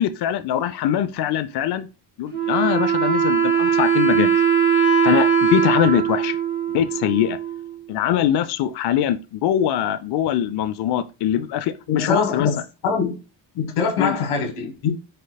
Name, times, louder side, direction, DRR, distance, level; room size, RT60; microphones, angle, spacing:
voice 1, 0.0-1.9 2.2-4.4 5.0-6.4 6.7-7.4 7.9-12.5 14.0-14.2, left 11 dB, 55° left, 0.5 m, -22 dB
Wind instrument woodwind instrument, 2.3-7.8, right 7 dB, 20° right, 2.2 m, -20 dB
voice 2, 11.9-13.1 13.5-14.9, left 5 dB, 90° left, 1.6 m, -23 dB
4.7 x 4.4 x 2.2 m
cardioid pair, 105°, 49 cm